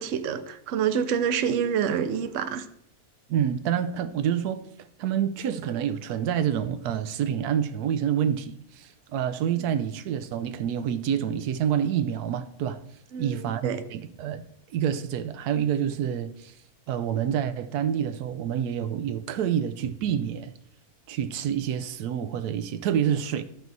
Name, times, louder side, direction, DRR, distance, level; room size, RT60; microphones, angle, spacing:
voice 1, 0.0-2.7 9.6-9.7 13.1-13.8, right 8 dB, 60° right, 1.0 m, -27 dB
voice 2, 3.3-4.7 5.0-12.8 13.2-14.4 14.7-16.5 16.9-20.5 21.1-23.4, right 9 dB, 90° right, 1.1 m, -27 dB
13.5 x 4.6 x 4.1 m
omnidirectional pair, 1.6 m